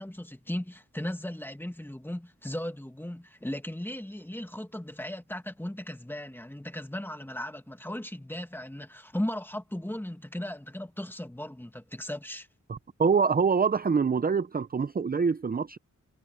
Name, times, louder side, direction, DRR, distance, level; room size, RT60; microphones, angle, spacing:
voice 1, 0.0-12.5, left 1 dB, 5° left, 2.0 m, -37 dB
voice 2, 12.7-15.8, right 5 dB, 30° right, 0.5 m, -25 dB
wide cardioid pair, 120°, 31 cm